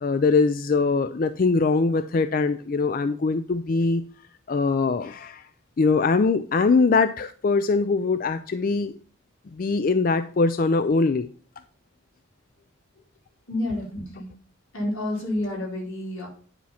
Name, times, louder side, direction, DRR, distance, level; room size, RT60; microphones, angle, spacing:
voice 1, 0.0-4.0 4.5-5.5 5.8-9.0 9.5-11.3, left 4 dB, 45° left, 11 dB, 0.4 m, -22 dB
voice 2, 13.5-14.3 14.7-16.3, left 1 dB, 90° left, -2 dB, 4.2 m, -29 dB
9.9 x 4.2 x 5.7 m, 0.42 s
head